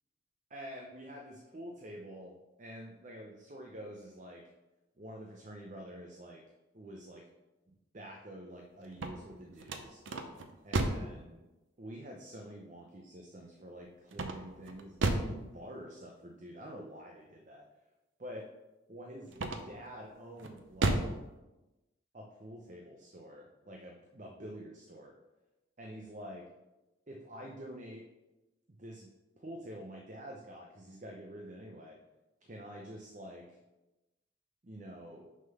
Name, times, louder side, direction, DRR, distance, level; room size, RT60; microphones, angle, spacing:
voice 1, 0.5-4.4 5.0-6.4 6.7-7.2 7.7-10.0 10.6-11.4 11.8-17.7 18.2-18.5 18.9-21.0 22.1-25.1 25.8-26.5 27.1-28.0 28.7-29.1 29.4-32.0 32.4-33.6 34.6-35.3, equal, 40° right, 0 dB, 0.7 m, -47 dB
sound 1, 8.8-11.2 14.1-15.4 19.3-19.9 20.4-21.2, right 2 dB, 85° right, 0.7 m, -33 dB
6.2 x 3.9 x 5.4 m, 1.0 s
head